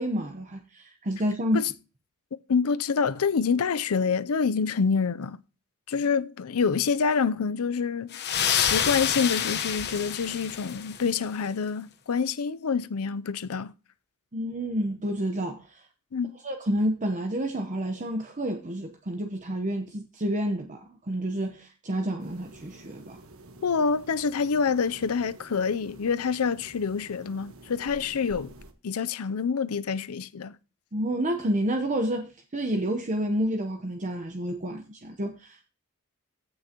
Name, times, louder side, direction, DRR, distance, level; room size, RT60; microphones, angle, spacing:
voice 1, 0.0-1.7 14.3-15.8 16.4-23.2 30.9-35.7, equal, 35° right, 0.9 m, -29 dB
voice 2, 2.5-5.4 5.9-13.7 16.1-16.4 23.6-28.5 28.8-30.5, left 5 dB, 70° left, 0.5 m, -27 dB
sound 1, 8.1-11.1, left 8 dB, 50° left, 1.0 m, -28 dB
sound 2, 22.2-28.7, right 2 dB, 70° right, 1.3 m, -49 dB
15.0 x 6.3 x 2.9 m
head